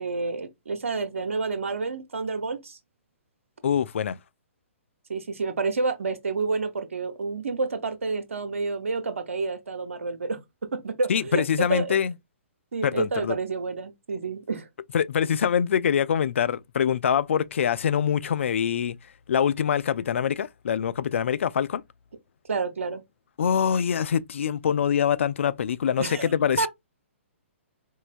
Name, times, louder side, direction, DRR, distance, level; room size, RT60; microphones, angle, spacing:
voice 1, 0.0-2.8 5.1-10.4 10.7-12.0 12.7-14.7 22.5-23.0 26.0-26.3 26.6-26.7, right 4 dB, 75° right, 0.8 m, -29 dB
voice 2, 3.6-4.2 11.1-12.1 12.8-13.4 14.9-19.0 19.3-21.8 23.4-26.7, left 8 dB, 65° left, 0.4 m, -24 dB
4.6 x 2.1 x 2.5 m
hypercardioid pair, 130°, 7 cm